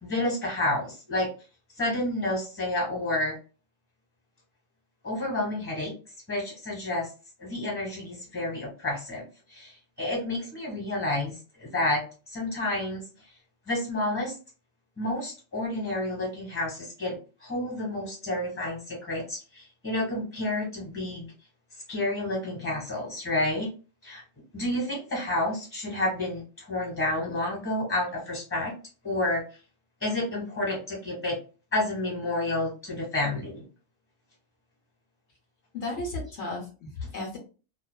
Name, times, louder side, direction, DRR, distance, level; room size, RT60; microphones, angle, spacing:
voice 1, 0.0-1.3 1.8-3.3 5.0-5.9 6.3-7.1 7.4-13.0 13.7-14.4 15.0-21.3 21.9-23.7 24.0-24.2 24.5-28.7 29.0-29.4 30.0-31.4 31.7-33.6, left 1 dB, 10° left, -3 dB, 1.2 m, -30 dB
voice 2, 35.7-37.4, left 2 dB, 65° left, -1 dB, 1.0 m, -34 dB
2.4 x 2.3 x 2.2 m, 0.34 s
omnidirectional pair, 1.3 m